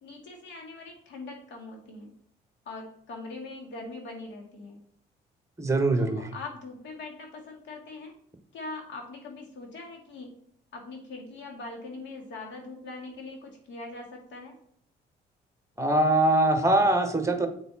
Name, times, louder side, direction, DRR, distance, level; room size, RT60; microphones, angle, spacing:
voice 1, 0.0-2.1 2.7-4.8 6.0-8.1 8.5-10.3 10.7-14.6, left 3 dB, 70° left, 1 dB, 2.2 m, -42 dB
voice 2, 5.6-6.2 15.8-17.5, right 2 dB, 15° right, 7 dB, 1.3 m, -22 dB
8.4 x 4.0 x 4.2 m, 0.66 s
supercardioid pair, 70°, 19 cm